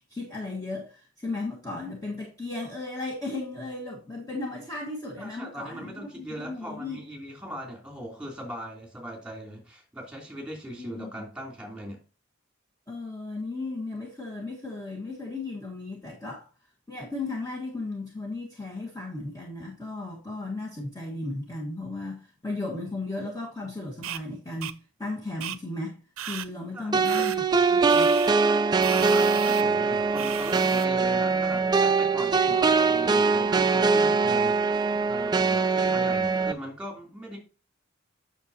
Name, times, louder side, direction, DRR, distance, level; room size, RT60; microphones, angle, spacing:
voice 1, 0.0-7.0 10.8-11.1 12.9-16.5 16.9-26.0 26.3-27.4 27.7-28.2, left 2 dB, 15° left, 1.4 m, -35 dB
voice 2, 5.2-12.0 26.7-27.2 28.7-34.7 35.0-37.4, equal, 5° right, 3.0 m, -40 dB
sound 1, 24.0-24.2 24.6-24.7 25.4-25.6 26.2-26.5 27.0-27.4 27.9-28.3 28.8-29.6 30.2-30.9, right 11 dB, 85° right, 0.6 m, -35 dB
sound 2, 26.9-36.5, right 4 dB, 20° right, 0.4 m, -22 dB
8.6 x 6.4 x 2.8 m
head